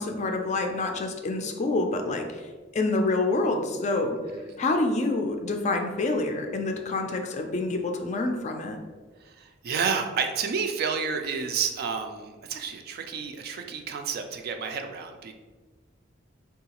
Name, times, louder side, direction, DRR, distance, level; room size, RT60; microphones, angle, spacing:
voice 1, 0.0-4.2 4.6-8.8, left 2 dB, 40° left, 4 dB, 0.3 m, -27 dB
voice 2, 9.2-15.3, right 6 dB, 55° right, 5 dB, 0.3 m, -30 dB
3.7 x 2.3 x 2.9 m, 1.3 s
head